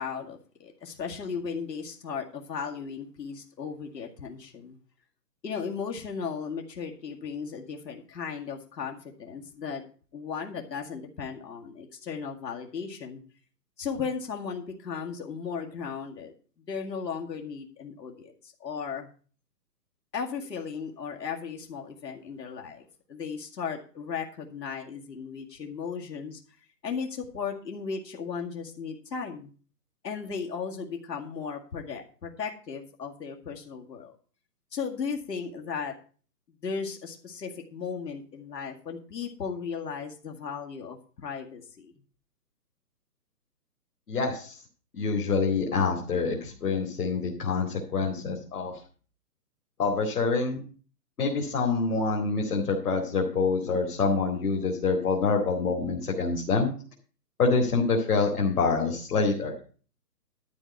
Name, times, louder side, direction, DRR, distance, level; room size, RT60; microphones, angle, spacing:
voice 1, 0.0-4.8 5.4-9.8 10.1-13.2 13.8-16.3 16.7-19.1 20.1-26.4 26.8-29.5 30.0-34.1 34.7-35.9 36.6-41.9, left 6 dB, 80° left, 1 dB, 2.3 m, -36 dB
voice 2, 44.1-44.6 44.9-48.8 49.8-50.6 51.2-56.7 57.4-59.5, left 4 dB, 65° left, -2 dB, 2.6 m, -26 dB
12.0 x 4.7 x 7.9 m, 0.40 s
hypercardioid pair, 170°, 49 cm